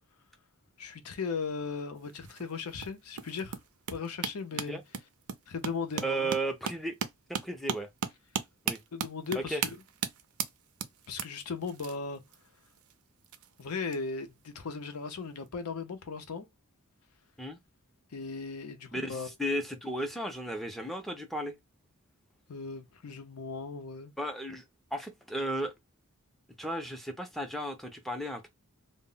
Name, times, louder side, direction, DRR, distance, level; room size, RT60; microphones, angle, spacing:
voice 1, 0.8-3.6 3.9-4.8 5.5-6.3 8.9-9.8 11.1-12.2 13.6-16.5 18.1-19.3 22.5-24.1, left 5 dB, 90° left, 0.6 m, -37 dB
sound 1, 2.0-14.0 14.9-15.2 15.5-15.6, right 7 dB, 80° right, 0.4 m, -37 dB
voice 2, 6.0-7.0 7.3-7.9 8.7-8.8 9.4-9.6 17.4-17.6 18.9-21.6 24.2-24.6 24.9-25.7 26.6-28.5, right 1 dB, ahead, 0.4 m, -34 dB
2.1 x 2.0 x 3.7 m
head